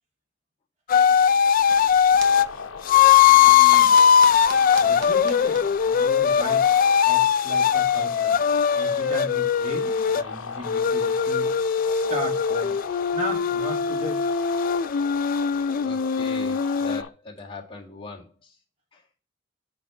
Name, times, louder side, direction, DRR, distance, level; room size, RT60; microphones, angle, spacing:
sound 1, 0.9-2.5 2.9-10.2 10.7-17.0, left 8 dB, 45° left, 0.3 m, -20 dB
sound 2, 1.4-6.7, right 5 dB, 65° right, 1.0 m, -43 dB
sound 3, 2.2-17.1, left 5 dB, 85° left, 0.6 m, -38 dB
voice 1, 3.3-4.0 4.8-6.6 7.0-8.4 8.7-11.5 11.9-12.7 13.1-14.2, equal, 35° right, 2.5 m, -36 dB
voice 2, 15.5-18.6 18.9-19.1, left 3 dB, 30° left, 1.8 m, -42 dB
5.9 x 5.3 x 4.7 m
head